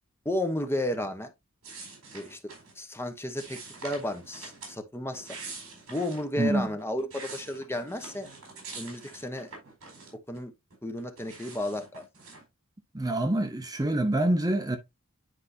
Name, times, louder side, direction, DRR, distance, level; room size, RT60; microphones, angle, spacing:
voice 1, 0.2-1.3 2.1-5.4 5.9-8.3 8.8-9.5 10.3-10.5 10.8-12.0, left 1 dB, 10° left, 1.0 m, -33 dB
sound 1, 1.6-2.7 3.4-4.8 5.1-6.3 6.8-10.4 10.7-12.4, right 4 dB, 70° right, 4.4 m, -45 dB
voice 2, 6.4-6.7 12.9-14.8, right 1 dB, 20° right, 0.8 m, -26 dB
10.0 x 4.7 x 2.7 m
head